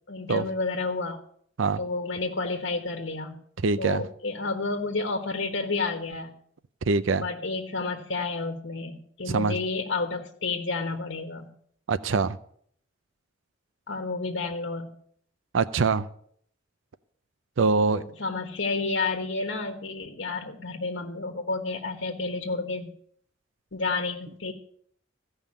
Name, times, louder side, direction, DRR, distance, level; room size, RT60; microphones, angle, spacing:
voice 1, 0.1-1.2 1.8-3.4 3.8-6.3 7.2-11.5 13.9-14.9 17.9-22.9 23.7-24.5, left 3 dB, 70° left, 3 dB, 1.4 m, -30 dB
voice 2, 3.6-4.0 6.9-7.3 9.3-9.6 11.9-12.4 15.5-16.1 17.6-18.0, right 4 dB, 85° right, 15 dB, 0.5 m, -23 dB
15.0 x 5.5 x 8.6 m, 0.63 s
head